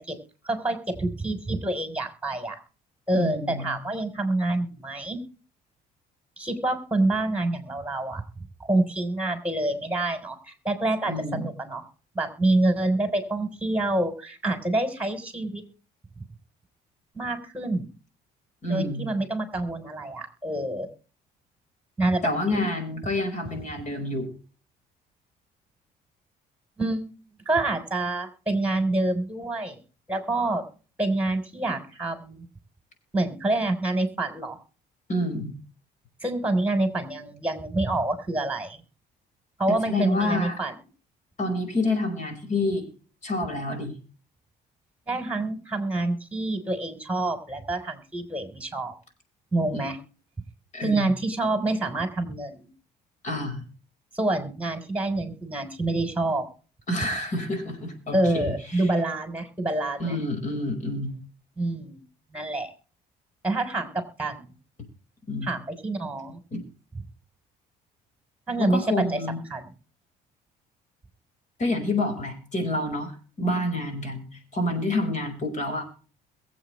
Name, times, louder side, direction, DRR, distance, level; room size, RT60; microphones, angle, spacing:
voice 1, 0.4-2.6 3.1-5.2 6.4-11.8 12.1-15.6 17.1-17.9 18.7-20.9 22.0-22.8 26.8-27.1 27.5-29.8 30.1-30.6 31.0-32.5 33.1-34.6 36.2-38.8 39.6-40.7 45.1-48.9 49.5-50.0 50.8-52.7 54.1-56.5 58.1-60.2 61.6-62.0 62.3-62.7 63.4-64.5 65.4-66.4 68.5-69.2 69.5-69.7, right 2 dB, 10° right, 7 dB, 3.7 m, -27 dB
voice 2, 3.1-3.8 11.1-11.5 18.6-19.1 22.2-24.3 35.1-35.5 39.8-40.6 41.4-42.9 43.2-43.9 49.7-49.8 50.7-51.1 53.2-53.6 56.9-58.8 60.0-61.2 65.3-65.5 66.5-66.6 68.6-69.4 71.6-75.8, left 2 dB, 45° left, 7 dB, 5.1 m, -28 dB
22.5 x 8.2 x 3.2 m, 0.37 s
cardioid pair, 110°, 17 cm